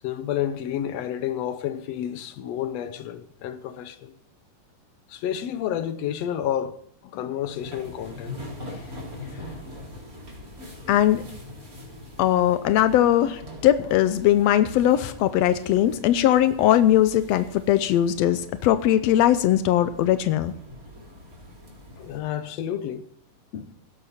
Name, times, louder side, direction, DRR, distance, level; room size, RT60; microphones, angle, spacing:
voice 1, 0.0-4.1 5.1-6.8 7.0-8.4 13.8-13.9 22.0-23.0 23.5-23.7, left 10 dB, 65° left, 1.7 m, -30 dB
sound 1, 7.4-22.2, left 1 dB, 25° right, 4.3 m, -42 dB
voice 2, 10.9-11.2 12.2-20.5, left 12 dB, 85° left, 1.5 m, -20 dB
17.0 x 12.0 x 4.3 m
omnidirectional pair, 3.8 m